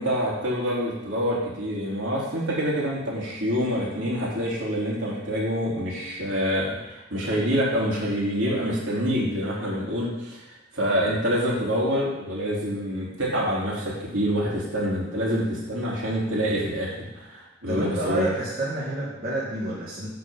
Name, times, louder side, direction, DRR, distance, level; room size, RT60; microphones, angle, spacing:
voice 1, 0.0-18.3, equal, 75° right, -6 dB, 3.3 m, -26 dB
voice 2, 17.7-20.1, right 2 dB, 50° right, -8 dB, 2.1 m, -29 dB
10.0 x 3.9 x 7.3 m, 1.0 s
head